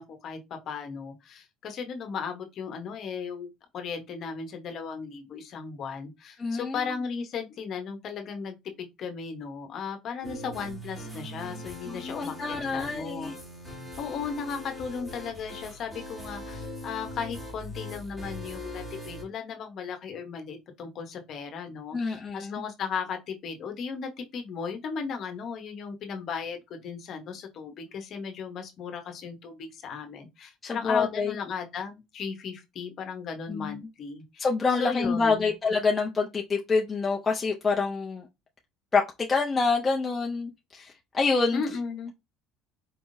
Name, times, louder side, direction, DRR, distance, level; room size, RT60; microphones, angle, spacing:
voice 1, 0.0-13.3 14.0-35.4 41.5-42.1, left 6 dB, 40° left, 1.0 m, -36 dB
voice 2, 6.4-6.9 11.9-13.4 21.9-22.6 30.6-31.3 33.5-33.8 34.4-38.2 38.9-39.0 39.3-41.6, left 4 dB, 15° left, 0.5 m, -27 dB
sound 1, 10.2-19.2, left 1 dB, 5° right, 1.6 m, -41 dB
4.5 x 3.5 x 2.6 m
cardioid pair, 150°, 0 cm